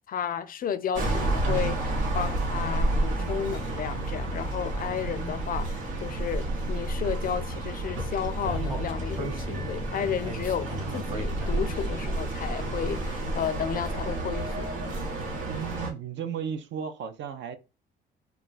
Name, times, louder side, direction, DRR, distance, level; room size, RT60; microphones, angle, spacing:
voice 1, 0.1-14.7, left 8 dB, 45° left, 0.4 m, -33 dB
sound 1, 0.9-15.9, right 2 dB, 85° right, 1.0 m, -30 dB
sound 2, 5.8-13.0, right 4 dB, 50° right, 0.9 m, -48 dB
Speech, 8.4-11.8, right 2 dB, 25° right, 1.0 m, -38 dB
voice 2, 15.3-17.6, right 7 dB, 65° right, 0.5 m, -35 dB
2.4 x 2.2 x 3.9 m
cardioid pair, 90°, 20 cm